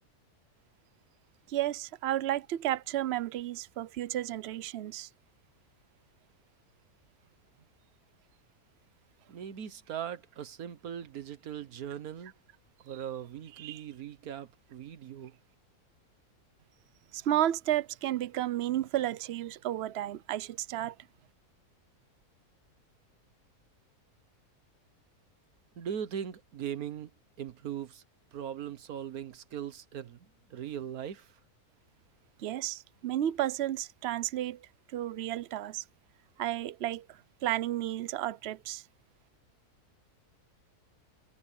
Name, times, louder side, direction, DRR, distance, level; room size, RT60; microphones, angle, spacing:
voice 1, 1.5-5.1 13.6-13.8 17.1-20.9 32.4-34.6 34.9-35.8 36.4-37.0 37.4-38.8, right 12 dB, 55° right, 0.8 m, -32 dB
voice 2, 9.3-12.3 12.8-15.3 25.8-27.1 27.4-28.0 28.3-30.2 30.5-31.3, right 9 dB, 70° right, 1.5 m, -39 dB
omnidirectional pair, 1.6 m